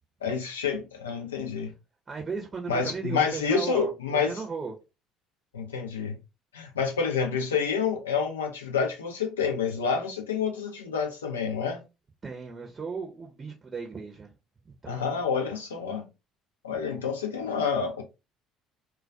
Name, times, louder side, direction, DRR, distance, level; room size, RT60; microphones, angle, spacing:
voice 1, 0.2-1.7 2.7-4.4 5.5-6.2 6.5-11.8 14.9-16.1 16.6-18.0, left 6 dB, 90° left, 0.5 m, -28 dB
voice 2, 2.1-4.7 12.2-14.3 14.6-15.2 16.9-17.0, right 4 dB, 30° right, 0.6 m, -36 dB
2.2 x 2.2 x 2.5 m
hypercardioid pair, 60°, 0 cm